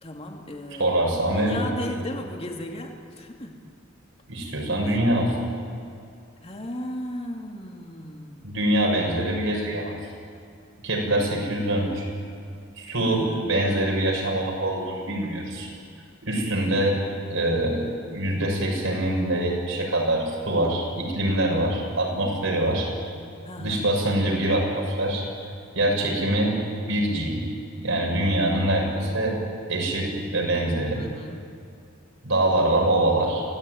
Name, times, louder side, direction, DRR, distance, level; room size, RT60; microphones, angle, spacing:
voice 1, 0.0-1.0 1.3-3.6 4.8-5.0 6.4-8.6 13.0-13.5 23.4-23.9 30.9-31.5, left 1 dB, 30° left, 2 dB, 2.7 m, -36 dB
voice 2, 0.8-1.6 4.3-5.4 8.4-10.0 10.8-12.0 12.8-15.7 16.2-17.0 17.3-17.9 18.1-22.9 23.6-25.3 25.7-27.4 27.8-29.4 29.7-31.0 32.2-33.4, right 1 dB, 75° right, 0 dB, 6.7 m, -24 dB
26.5 x 17.5 x 9.5 m, 2.4 s
head